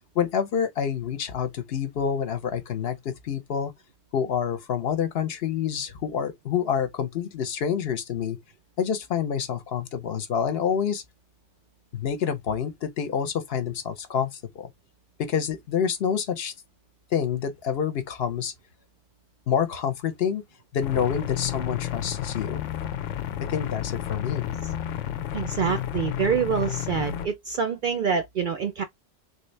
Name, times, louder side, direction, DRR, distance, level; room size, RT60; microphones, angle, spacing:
voice 1, 0.1-3.7 4.1-8.4 8.8-11.0 11.9-14.7 15.2-16.5 17.1-18.5 19.5-20.4 20.7-22.6 23.5-24.5, left 8 dB, 60° left, 0.9 m, -27 dB
sound 1, 20.8-27.3, left 11 dB, 85° left, 0.9 m, -31 dB
voice 2, 25.3-28.8, right 6 dB, 60° right, 0.5 m, -26 dB
3.5 x 2.7 x 3.2 m
omnidirectional pair, 1.2 m